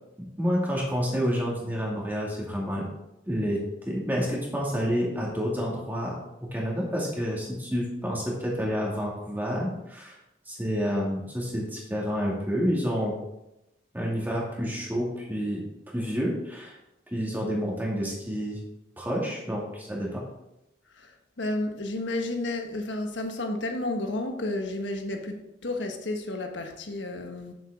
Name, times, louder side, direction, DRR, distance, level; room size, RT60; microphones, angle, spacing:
voice 1, 0.4-2.9 3.3-3.6 3.9-10.2 10.5-13.1 13.9-15.6 15.9-16.8 17.1-18.6 19.0-20.2, equal, 10° right, -3 dB, 2.4 m, -29 dB
voice 2, 21.0-27.5, left 2 dB, 85° left, 4 dB, 1.3 m, -32 dB
9.2 x 7.5 x 3.7 m, 0.87 s
head